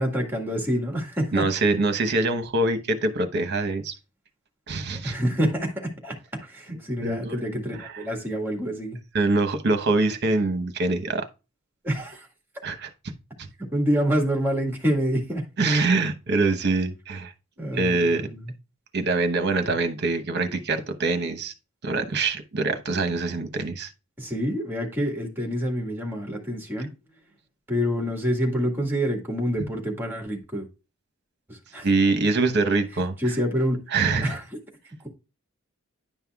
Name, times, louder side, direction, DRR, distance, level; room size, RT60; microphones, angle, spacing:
voice 1, 0.0-1.5 4.9-9.0 11.8-12.3 13.7-15.4 17.6-18.5 22.1-22.2 24.2-26.9 27.7-30.7 31.5-31.9 33.2-33.8 34.2-34.4, equal, 10° right, 1.8 m, -27 dB
voice 2, 1.3-3.9 4.7-5.1 7.0-7.4 9.1-11.2 12.6-13.1 13.4-13.5 15.6-17.3 17.7-18.3 18.9-21.5 21.8-23.9 31.8-33.2 33.9-34.4, right 3 dB, 55° right, 0.9 m, -24 dB
10.0 x 5.6 x 2.3 m
head